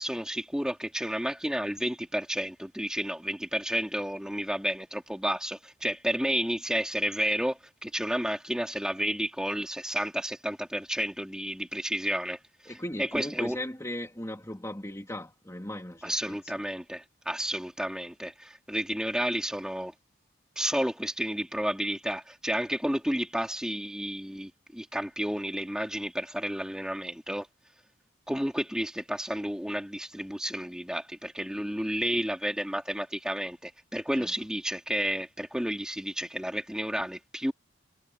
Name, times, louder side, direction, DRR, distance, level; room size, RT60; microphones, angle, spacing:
voice 1, 0.0-12.7 13.0-13.6 16.0-19.9 20.6-27.5 28.3-37.5, equal, 5° right, 2.9 m, -31 dB
voice 2, 12.7-16.4 34.2-34.3, left 1 dB, 15° left, 2.5 m, -37 dB
head